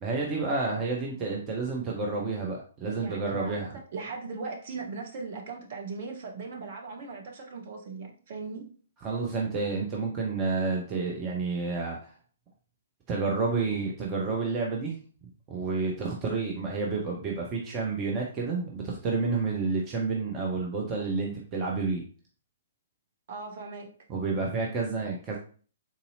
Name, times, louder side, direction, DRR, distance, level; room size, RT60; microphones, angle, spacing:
voice 1, 0.0-3.8 9.0-12.1 13.1-15.0 15.5-22.0 24.1-25.4, right 4 dB, 25° right, -1 dB, 0.6 m, -30 dB
voice 2, 2.9-3.6 3.9-8.7 23.3-23.9, right 4 dB, 45° right, 1 dB, 0.9 m, -39 dB
3.8 x 2.7 x 2.7 m, 0.41 s
figure-of-eight pair, 120°, 0 cm